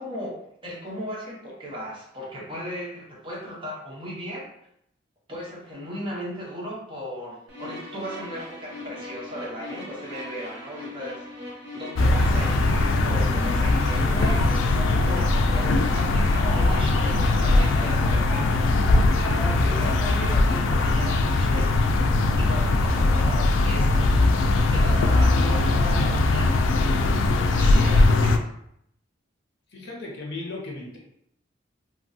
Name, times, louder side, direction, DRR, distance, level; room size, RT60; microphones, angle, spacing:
voice 1, 0.0-4.5 5.3-11.2 11.8-18.7 19.2-21.7 22.4-24.0 24.7-26.6 27.6-28.5, equal, 25° right, -5 dB, 0.8 m, -36 dB
sound 1, 7.5-17.9, left 2 dB, 60° right, 0.8 m, -39 dB
sound 2, 12.0-28.4, left 2 dB, 85° left, 0.3 m, -20 dB
sound 3, 12.0-12.8 13.9-15.6 16.3-20.7, equal, ahead, 0.9 m, -38 dB
voice 2, 29.7-31.0, left 2 dB, 60° left, -2 dB, 0.7 m, -36 dB
2.9 x 2.3 x 2.7 m, 0.74 s
head